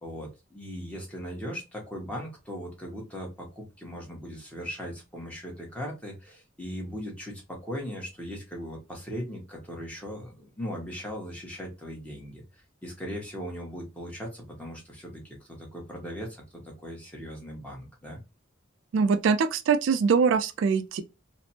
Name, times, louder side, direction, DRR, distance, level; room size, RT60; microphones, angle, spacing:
voice 1, 0.0-12.4 12.8-15.2 15.5-18.2, equal, 5° left, 0.9 m, -38 dB
voice 2, 18.9-21.0, right 5 dB, 70° right, 0.3 m, -23 dB
3.2 x 2.0 x 2.8 m
head